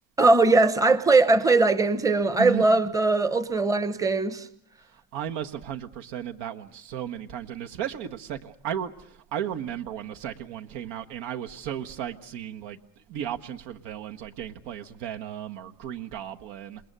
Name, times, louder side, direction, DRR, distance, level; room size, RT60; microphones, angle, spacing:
voice 1, 0.2-4.5, right 3 dB, 10° right, 0.9 m, -20 dB
voice 2, 2.4-2.8 4.9-12.8 13.1-16.8, right 10 dB, 75° right, 1.7 m, -35 dB
28.0 x 21.0 x 6.9 m
cardioid pair, 125°, 42 cm